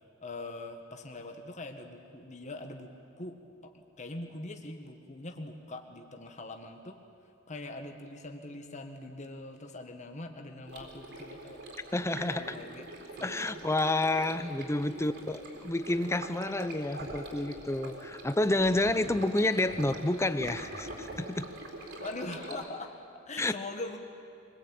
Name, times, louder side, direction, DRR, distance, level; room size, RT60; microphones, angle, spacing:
voice 1, 0.2-3.4 3.6-7.0 7.5-11.6 12.1-12.9 13.2-13.6 14.7-15.1 22.0-22.9 23.2-24.0, left 2 dB, 35° left, 4 dB, 1.6 m, -42 dB
Stream, 10.7-22.7, right 1 dB, 60° right, 4.2 m, -44 dB
voice 2, 11.9-12.4 13.2-21.5 23.4-23.5, left 2 dB, 15° left, 12 dB, 0.8 m, -29 dB
24.5 x 21.0 x 9.0 m, 2.5 s
head